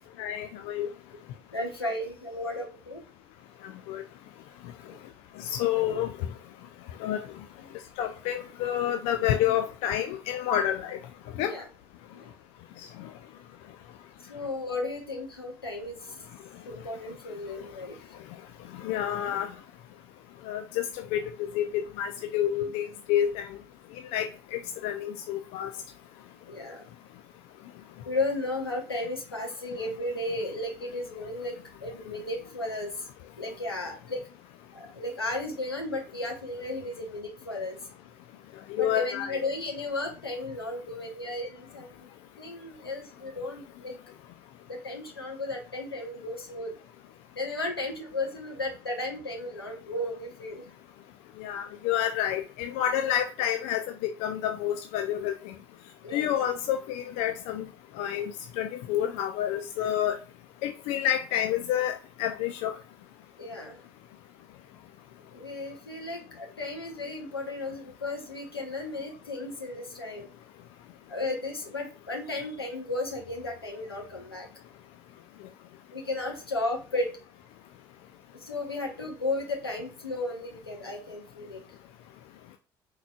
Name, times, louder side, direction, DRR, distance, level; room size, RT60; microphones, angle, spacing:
voice 1, 0.2-0.9 3.6-4.0 5.4-6.3 7.0-7.3 8.0-11.0 11.4-11.5 18.7-19.5 20.5-23.6 24.1-25.7 38.7-39.4 51.4-55.5 56.1-57.6 58.0-60.2 60.6-62.8, left 10 dB, 60° left, 6 dB, 0.4 m, -29 dB
voice 2, 1.5-3.0 4.8-5.0 7.6-7.7 11.4-11.7 12.2-12.3 14.3-16.0 16.7-18.0 26.5-26.9 28.0-31.5 31.8-32.9 33.4-34.2 34.7-37.8 38.8-42.1 42.4-43.9 44.7-46.7 47.4-50.6 56.0-56.3 63.4-63.8 65.3-70.3 71.1-74.5 75.9-77.1 78.4-81.6, left 2 dB, 85° left, 1 dB, 0.8 m, -34 dB
4.6 x 3.8 x 2.2 m, 0.34 s
figure-of-eight pair, 50°, 12 cm